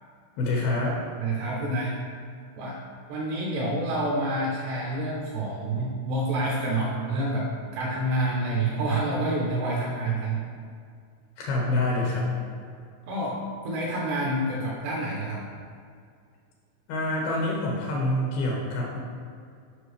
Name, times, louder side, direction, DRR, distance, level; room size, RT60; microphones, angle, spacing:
voice 1, 0.4-1.0 11.4-12.3 16.9-19.0, left 2 dB, 85° left, -3 dB, 2.1 m, -26 dB
voice 2, 1.2-2.0 2.6-2.8 3.1-10.4 13.1-13.4 13.6-15.4, right 1 dB, 80° right, -3 dB, 2.5 m, -28 dB
9.6 x 5.8 x 3.3 m, 2.2 s
omnidirectional pair, 5.7 m